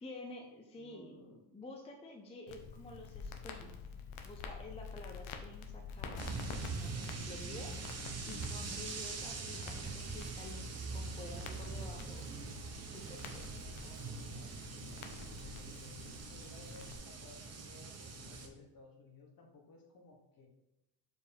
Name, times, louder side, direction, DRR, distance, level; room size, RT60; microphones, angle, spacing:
voice 1, 0.0-3.8 4.2-12.3 12.9-13.5, left 2 dB, 15° left, 2 dB, 0.5 m, -50 dB
voice 2, 0.8-1.4 13.7-20.5, left 3 dB, 45° left, 2 dB, 1.3 m, -57 dB
Crackle, 2.5-16.9, left 5 dB, 90° left, 0.9 m, -48 dB
sound 1, 6.2-18.5, right 4 dB, 35° right, 0.9 m, -43 dB
5.0 x 4.6 x 5.2 m, 0.93 s
cardioid pair, 135°, 47 cm